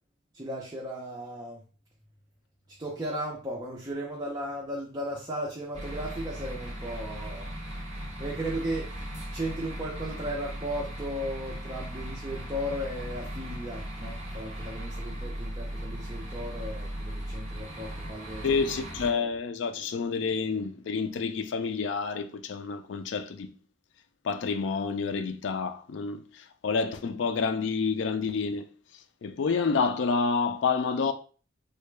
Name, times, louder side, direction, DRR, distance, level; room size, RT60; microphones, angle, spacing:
voice 1, 0.3-1.6 2.8-7.5 8.2-18.6, equal, 20° right, 0.5 m, -36 dB
sound 1, 5.7-19.1, equal, 35° right, 1.0 m, -37 dB
voice 2, 18.4-23.5 24.2-28.7 29.2-31.1, left 5 dB, 65° left, 0.4 m, -29 dB
3.7 x 2.1 x 3.2 m
head